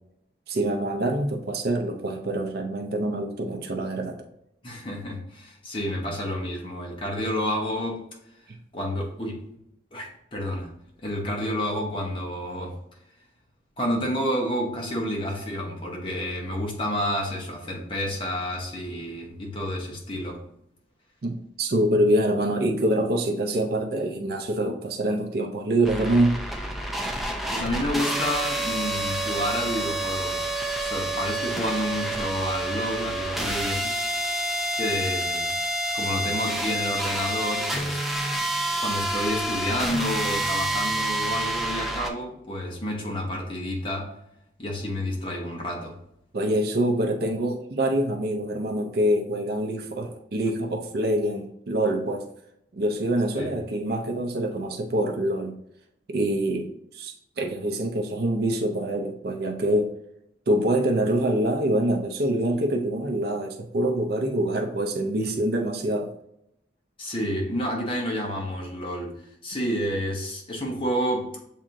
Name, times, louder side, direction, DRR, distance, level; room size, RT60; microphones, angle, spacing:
voice 1, 0.5-4.2 21.2-26.4 46.3-52.2 52.7-55.6 56.1-59.9 60.5-66.1, right 1 dB, 55° right, 4 dB, 0.5 m, -25 dB
voice 2, 4.6-8.0 8.7-9.4 9.9-10.7 11.0-12.8 13.8-20.4 27.0-30.5 30.8-34.0 34.8-35.5 35.9-38.0 38.8-44.1 44.6-46.0 53.3-53.5 65.2-65.3 67.0-71.3, equal, 30° left, 0 dB, 1.0 m, -30 dB
sound 1, 25.8-42.1, right 1 dB, ahead, 0.4 m, -28 dB
7.3 x 2.8 x 2.5 m, 0.78 s
head